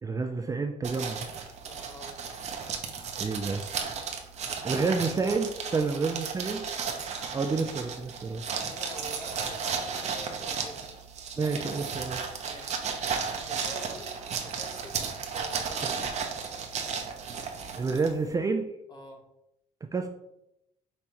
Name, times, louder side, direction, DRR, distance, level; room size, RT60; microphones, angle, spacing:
voice 1, 0.0-1.3 3.2-3.6 4.6-6.6 7.3-8.7 11.4-12.2 17.8-18.7 19.9-20.1, right 4 dB, 25° right, 5 dB, 0.4 m, -29 dB
sound 1, 0.8-18.3, right 6 dB, 55° right, 0.7 m, -34 dB
voice 2, 1.6-2.2 4.4-5.0 5.6-5.9 8.6-10.9 12.4-12.8 13.5-14.2 14.4-15.0 15.3-16.0 18.9-19.2, equal, 30° left, 2 dB, 1.1 m, -47 dB
5.4 x 3.2 x 2.9 m, 0.82 s
cardioid pair, 95°, 14 cm